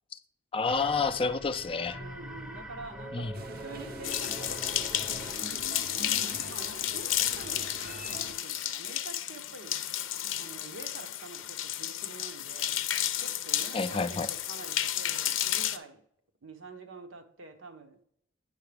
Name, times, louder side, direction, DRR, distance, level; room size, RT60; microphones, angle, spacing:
voice 1, 0.5-2.0 3.1-3.3 13.7-14.3, left 4 dB, 30° left, 0.4 m, -29 dB
sound 1, 0.7-5.6, equal, 5° right, 0.7 m, -43 dB
voice 2, 1.9-9.8 10.4-12.9 13.2-16.0 16.4-18.0, right 3 dB, 80° right, 0.9 m, -47 dB
sound 2, 3.3-8.3, right 2 dB, 50° right, 0.6 m, -44 dB
sound 3, 4.0-15.8, left 12 dB, 80° left, 0.5 m, -32 dB
9.7 x 5.7 x 3.4 m
head